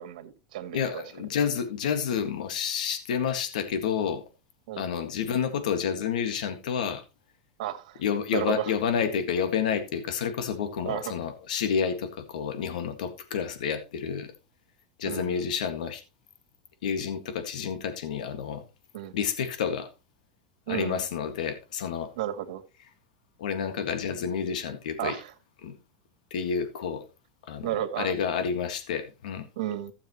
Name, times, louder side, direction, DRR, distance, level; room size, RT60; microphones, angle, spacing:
voice 1, 0.0-1.0 4.7-4.9 7.6-8.0 8.3-8.7 10.9-11.1 15.0-15.5 18.9-19.1 20.7-21.0 22.2-22.6 25.0-25.3 27.6-28.1 29.6-29.9, right 12 dB, 75° right, 2.0 m, -33 dB
voice 2, 0.7-4.2 4.8-7.0 8.0-14.3 15.0-16.0 16.8-18.6 19.1-19.9 20.7-22.1 23.4-25.2 25.6-25.8 26.3-27.0 27.5-27.7 28.0-29.5, left 7 dB, 90° left, 1.8 m, -29 dB
15.5 x 7.3 x 3.0 m
supercardioid pair, 140°, 4 cm